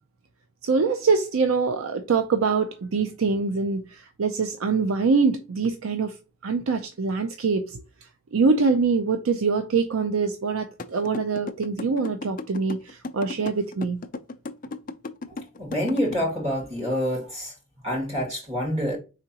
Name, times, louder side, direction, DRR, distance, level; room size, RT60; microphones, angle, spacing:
voice 1, 0.6-6.1 6.4-7.8 8.3-14.0, right 4 dB, 90° right, 0.5 m, -24 dB
sound 1, 10.8-16.1, left 3 dB, 40° left, 0.4 m, -34 dB
voice 2, 15.6-17.5 17.8-19.0, equal, 30° right, 2.2 m, -27 dB
4.9 x 3.7 x 2.8 m
head